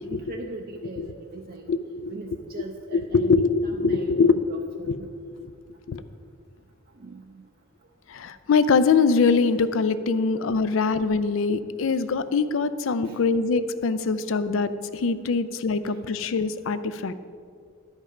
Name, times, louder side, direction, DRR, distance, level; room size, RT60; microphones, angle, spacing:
voice 1, 0.0-1.7 2.1-4.1 4.5-5.1 7.0-7.4 13.0-13.2 15.8-16.0, right 3 dB, 45° right, 1 dB, 0.5 m, -40 dB
voice 2, 1.7-2.1 2.9-4.4 4.9-5.0 5.4-5.5 5.9-6.0 8.1-17.1, left 4 dB, 75° left, 13 dB, 0.4 m, -23 dB
11.0 x 5.4 x 4.9 m, 2.2 s
head